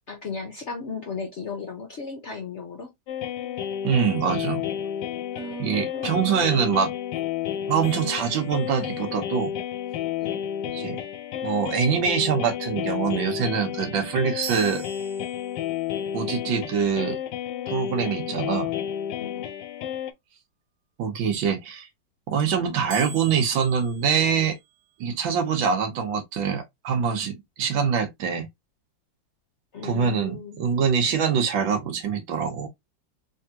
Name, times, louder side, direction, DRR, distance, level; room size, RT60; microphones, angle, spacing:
voice 1, 0.1-2.9 5.3-6.4 10.2-10.4 19.2-19.5 29.7-30.6, left 4 dB, 60° left, 0.7 m, -35 dB
sound 1, 3.1-20.1, left 10 dB, 75° left, 1.2 m, -31 dB
voice 2, 3.8-4.7 5.6-6.9 7.7-9.5 10.7-11.0 11.4-14.8 16.1-17.2 17.7-18.7 21.0-21.9 22.3-24.6 25.0-28.4 29.8-32.7, right 6 dB, 80° right, 1.8 m, -24 dB
sound 2, 7.8-9.1 14.4-15.9 22.9-25.0, right 7 dB, 65° right, 1.3 m, -43 dB
3.5 x 3.4 x 2.8 m
omnidirectional pair, 2.1 m